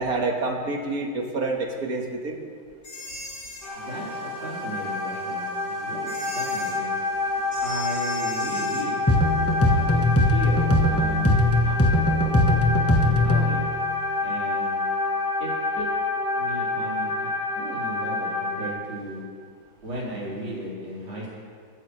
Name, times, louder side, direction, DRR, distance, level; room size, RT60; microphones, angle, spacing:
voice 1, 0.0-2.4 9.3-9.4, right 3 dB, 50° right, 1 dB, 2.0 m, -28 dB
sound 1, 2.8-3.7 6.1-6.8 7.5-8.9, left 3 dB, 85° left, 3.2 m, -38 dB
sound 2, 3.6-18.7, left 2 dB, 30° left, 2.7 m, -28 dB
voice 2, 3.7-9.0 9.6-9.8 10.3-12.4 12.8-13.6 14.2-14.8 15.4-15.5 15.8-15.9 16.4-19.2 19.8-21.4, right 1 dB, 75° right, -7 dB, 5.1 m, -36 dB
sound 3, 9.1-13.6, left 1 dB, 10° left, 0.8 m, -20 dB
22.0 x 14.5 x 3.3 m, 2.1 s
omnidirectional pair, 2.1 m